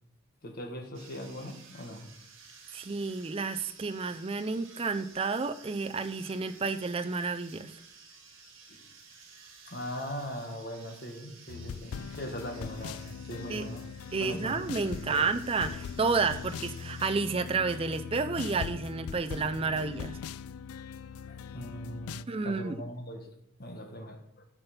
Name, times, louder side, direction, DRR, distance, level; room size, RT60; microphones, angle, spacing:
voice 1, 0.4-2.1 8.7-8.8 9.7-13.8 14.2-15.3 21.3-23.3 23.6-24.4, equal, 45° left, 4 dB, 1.5 m, -40 dB
sound 1, 0.9-17.1, right 5 dB, 60° right, 2.2 m, -54 dB
voice 2, 2.7-7.8 13.5-13.6 14.1-20.2 22.3-22.8, right 4 dB, 25° right, 9 dB, 0.4 m, -31 dB
sound 2, 11.5-22.2, left 6 dB, 85° left, 0.4 m, -41 dB
11.0 x 5.7 x 5.3 m, 0.74 s
head